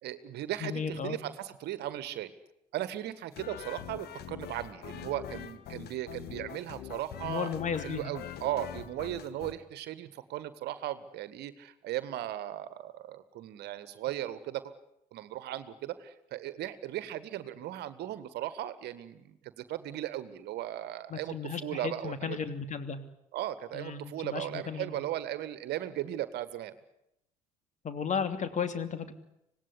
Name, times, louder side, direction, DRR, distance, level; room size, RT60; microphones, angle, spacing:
voice 1, 0.0-2.3 2.7-7.5 7.8-14.7 15.1-22.4 23.3-26.7, right 13 dB, 55° right, 14 dB, 1.7 m, -37 dB
voice 2, 0.6-1.2 7.2-8.1 21.1-23.0 23.7-25.0 27.8-29.1, left 6 dB, 35° left, 9 dB, 3.0 m, -34 dB
sound 1, 3.3-9.5, left 10 dB, 55° left, 1.8 m, -44 dB
26.0 x 19.0 x 10.0 m, 0.83 s
figure-of-eight pair, 60°, 20 cm